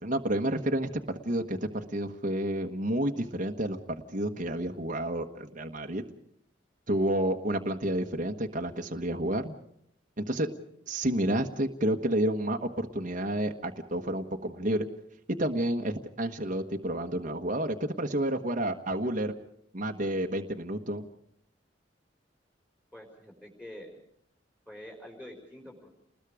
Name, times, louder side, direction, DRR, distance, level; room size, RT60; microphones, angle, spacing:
voice 1, 0.0-3.8 4.1-6.0 6.9-9.5 10.2-10.5 10.9-14.9 15.4-19.3 19.7-21.0, right 1 dB, 45° right, 3 dB, 1.4 m, -30 dB
voice 2, 22.9-23.9 24.7-25.9, left 1 dB, 10° left, 1 dB, 4.7 m, -46 dB
30.0 x 20.5 x 5.0 m, 0.70 s
head